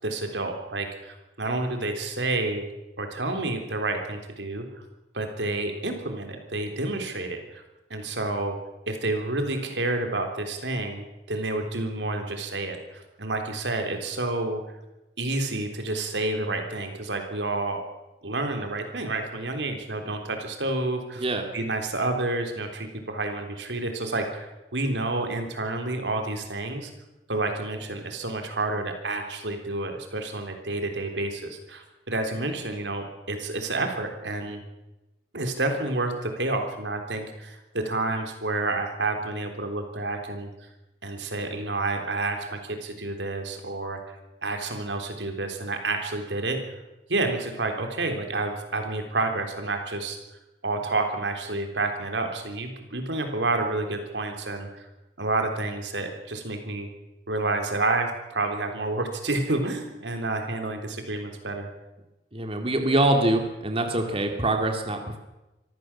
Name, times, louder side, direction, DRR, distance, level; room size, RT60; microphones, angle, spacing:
voice 1, 0.0-2.6 3.0-4.7 5.1-7.6 7.9-8.6 8.9-14.6 15.2-17.8 18.2-21.2 21.5-26.9 27.3-34.6 35.3-40.5 41.0-44.2 44.4-46.6 47.1-50.2 50.6-54.9 55.2-56.9 57.3-61.7, right 2 dB, 85° right, 5 dB, 3.6 m, -29 dB
voice 2, 62.3-65.2, right 1 dB, 35° right, 4 dB, 2.2 m, -24 dB
24.5 x 14.5 x 7.3 m, 1.0 s
head